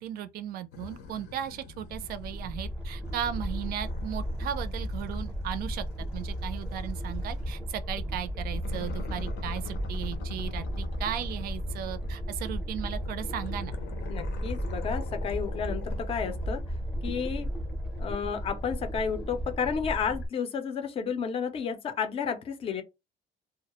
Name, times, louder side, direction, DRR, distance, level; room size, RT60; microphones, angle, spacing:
voice 1, 0.0-5.9 6.1-13.7, right 10 dB, 60° right, 0.4 m, -36 dB
sound 1, 0.7-2.7 3.0-7.6 8.5-12.4 12.9-16.6, left 7 dB, 75° left, 0.6 m, -47 dB
sound 2, 1.8-20.3, equal, 5° right, 0.6 m, -34 dB
voice 2, 14.1-16.6 17.0-17.5 18.0-22.8, left 6 dB, 35° left, 0.4 m, -32 dB
2.2 x 2.0 x 2.9 m
cardioid pair, 155°, 17 cm